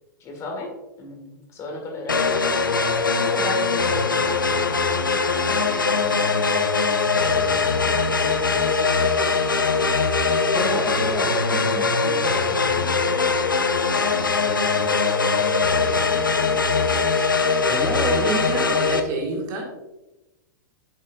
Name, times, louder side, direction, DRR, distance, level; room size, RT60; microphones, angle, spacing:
voice 1, 0.2-0.7 1.0-2.4 3.2-5.7, left 3 dB, 25° left, 1 dB, 1.9 m, -35 dB
sound 1, 2.1-19.0, left 4 dB, 80° left, 0.7 m, -21 dB
voice 2, 9.2-9.6 10.5-13.0 17.7-18.4, right 2 dB, ahead, -1 dB, 0.7 m, -32 dB
voice 3, 18.0-19.8, right 3 dB, 35° right, 0 dB, 2.0 m, -29 dB
7.7 x 7.3 x 2.6 m, 1.0 s
figure-of-eight pair, 100°, 11 cm